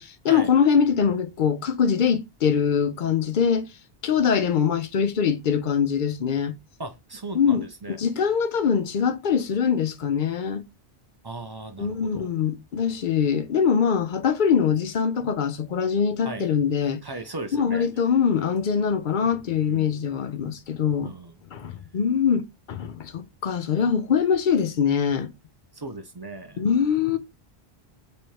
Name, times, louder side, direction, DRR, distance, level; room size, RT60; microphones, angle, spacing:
voice 1, 0.0-3.7 4.0-6.6 7.3-10.6 11.8-17.0 17.5-21.1 21.5-25.3 26.6-27.2, left 7 dB, 60° left, 0.7 m, -23 dB
voice 2, 6.8-8.0 11.2-12.3 16.2-16.5 17.0-17.9 19.7-19.9 21.0-21.4 25.7-26.6, right 2 dB, 40° right, 0.3 m, -37 dB
3.2 x 2.7 x 4.5 m
omnidirectional pair, 1.1 m